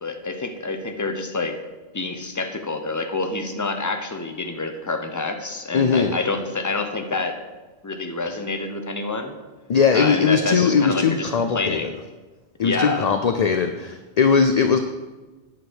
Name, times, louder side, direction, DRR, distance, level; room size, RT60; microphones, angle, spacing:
voice 1, 0.0-1.6 1.9-7.4 7.8-9.3 9.9-11.9 12.6-13.1, left 3 dB, 20° left, 6 dB, 0.8 m, -27 dB
voice 2, 5.7-6.2 9.7-11.9 12.6-14.8, left 5 dB, 50° left, 7 dB, 0.5 m, -19 dB
9.5 x 6.5 x 6.3 m, 1.2 s
omnidirectional pair, 1.1 m